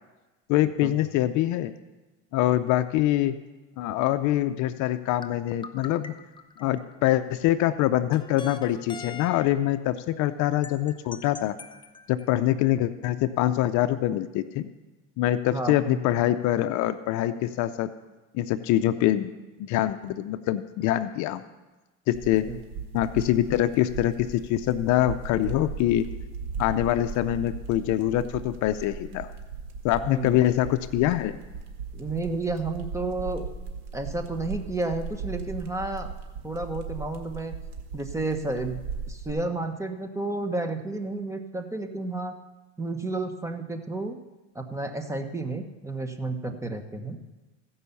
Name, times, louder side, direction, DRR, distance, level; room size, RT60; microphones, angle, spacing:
voice 1, 0.5-1.7 2.3-3.4 3.8-6.1 6.6-11.5 12.1-14.7 15.2-17.9 18.3-19.3 19.6-21.4 22.1-22.5 22.9-26.1 26.6-29.3 29.8-31.4, left 13 dB, 55° left, 11 dB, 0.6 m, -24 dB
sound 1, 5.2-7.1 8.1-9.8 10.6-12.3, left 5 dB, 15° left, 0.6 m, -43 dB
voice 2, 15.5-16.0 22.5-22.6 30.0-30.4 31.9-33.5 33.9-36.1 36.4-37.5 37.9-38.8 39.1-42.3 42.8-44.2 44.5-47.2, right 2 dB, 10° right, 6 dB, 0.9 m, -31 dB
sound 2, 22.1-39.3, right 5 dB, 75° right, 1.9 m, -38 dB
15.5 x 5.5 x 7.0 m, 1.1 s
supercardioid pair, 115°, 36 cm